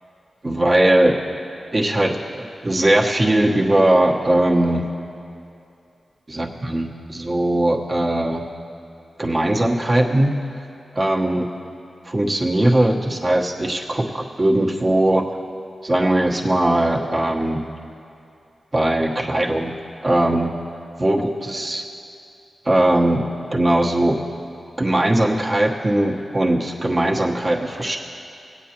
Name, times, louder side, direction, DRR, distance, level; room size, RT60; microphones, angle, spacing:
voice 1, 0.4-1.2 1.7-4.8 6.3-8.5 9.2-10.3 10.9-11.5 12.0-15.3 15.8-17.6 18.7-19.7 20.0-20.5 21.0-21.8 22.6-23.2 23.5-24.2 24.8-28.0, right 1 dB, 40° right, -1 dB, 1.2 m, -19 dB
18.0 x 8.5 x 3.0 m, 2.6 s
cardioid pair, 40°, 0 cm